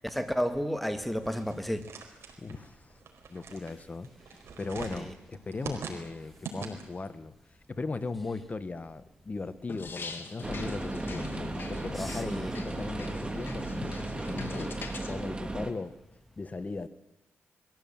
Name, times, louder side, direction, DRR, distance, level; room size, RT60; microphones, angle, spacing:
voice 1, 0.1-1.9 4.9-5.1 11.9-12.6, equal, ahead, 2.1 m, -32 dB
sound 1, 1.2-7.1, right 5 dB, 70° right, 4.6 m, -43 dB
voice 2, 2.4-3.0 3.3-7.3 7.7-11.3 11.7-14.7 15.1-16.0 16.4-16.9, left 3 dB, 35° left, 1.6 m, -38 dB
sound 2, 9.7-15.1, left 4 dB, 50° left, 2.6 m, -42 dB
sound 3, 10.4-15.7, right 2 dB, 20° right, 2.5 m, -35 dB
22.0 x 15.5 x 8.9 m
cardioid pair, 70°, 5 cm